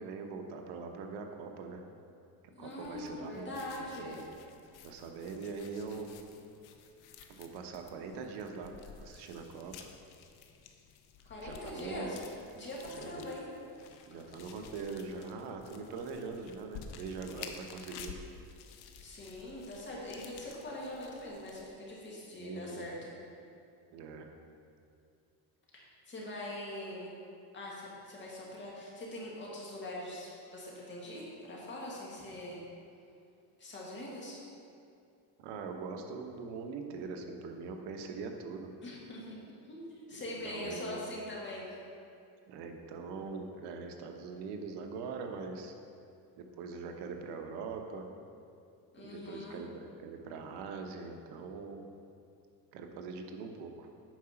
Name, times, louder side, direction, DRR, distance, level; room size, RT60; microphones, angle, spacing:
voice 1, 0.0-1.8 2.6-3.5 4.0-4.2 4.8-6.1 7.3-9.9 11.4-12.2 12.8-13.3 14.1-18.2 22.4-22.9 23.9-24.3 35.4-38.7 40.1-41.0 42.5-45.7 46.6-48.1 49.0-51.8 52.7-53.9, right 4 dB, 85° right, 4 dB, 1.0 m, -42 dB
voice 2, 2.5-4.2 11.3-12.2 12.5-13.5 19.0-23.1 25.7-27.1 27.5-32.6 33.6-34.4 38.8-41.8 48.9-49.6, left 1 dB, 30° left, -5 dB, 2.1 m, -43 dB
sound 1, 2.7-21.7, left 6 dB, 70° left, 0.8 m, -52 dB
9.2 x 4.8 x 5.8 m, 2.5 s
cardioid pair, 140°, 40 cm